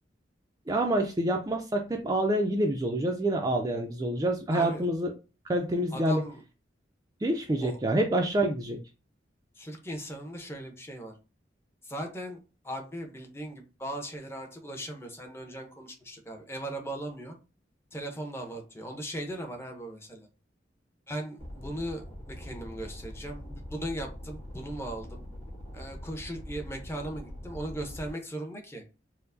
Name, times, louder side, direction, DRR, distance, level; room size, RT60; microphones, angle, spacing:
voice 1, 0.7-5.1 5.5-6.2 7.2-8.8, right 1 dB, 20° right, 3 dB, 0.4 m, -27 dB
voice 2, 4.5-4.9 5.9-6.4 7.6-7.8 9.5-11.1 11.8-17.4 17.9-20.3 21.1-25.2 25.7-28.8, right 1 dB, 15° left, 3 dB, 0.7 m, -38 dB
sound 1, 21.4-28.1, equal, 35° left, 1.7 m, -43 dB
4.4 x 2.1 x 2.6 m, 0.31 s
head